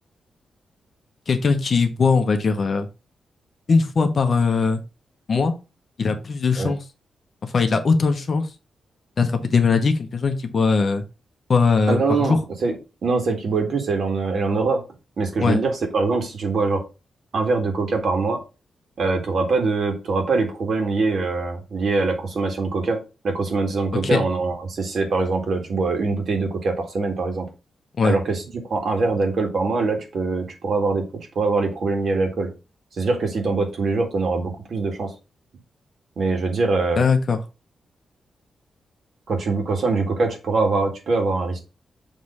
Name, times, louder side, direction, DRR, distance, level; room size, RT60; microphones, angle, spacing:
voice 1, 1.3-2.9 3.7-4.8 5.3-5.5 6.0-6.8 7.4-8.5 9.2-11.0 11.5-12.4 15.4-15.6 24.0-24.2 28.0-28.2 37.0-37.4, left 4 dB, 40° left, 7 dB, 1.0 m, -20 dB
voice 2, 11.9-14.8 15.2-16.8 17.3-18.4 19.0-23.0 23.2-27.5 28.0-31.0 31.4-32.5 33.0-35.1 36.2-37.0 39.3-41.6, right 3 dB, 55° right, 4 dB, 1.8 m, -23 dB
6.6 x 3.2 x 5.5 m, 0.30 s
wide cardioid pair, 150°, 0 cm